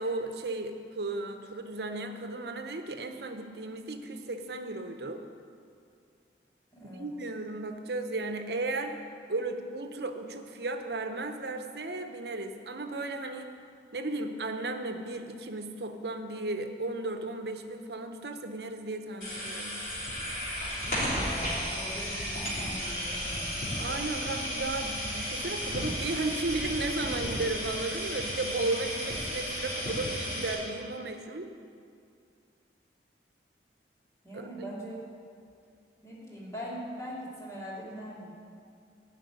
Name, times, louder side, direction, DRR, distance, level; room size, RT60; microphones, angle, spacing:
voice 1, 0.0-5.2 6.8-9.0 9.3-13.5 13.9-19.8 23.8-31.5 34.3-34.5, right 2 dB, 70° right, 6 dB, 0.9 m, -35 dB
voice 2, 6.7-7.1 20.8-23.6 34.2-35.0 36.0-38.3, equal, 15° left, -6 dB, 2.7 m, -41 dB
sound 1, 19.2-30.5, equal, 50° left, 3.7 m, -34 dB
11.5 x 6.1 x 9.4 m, 2.3 s
head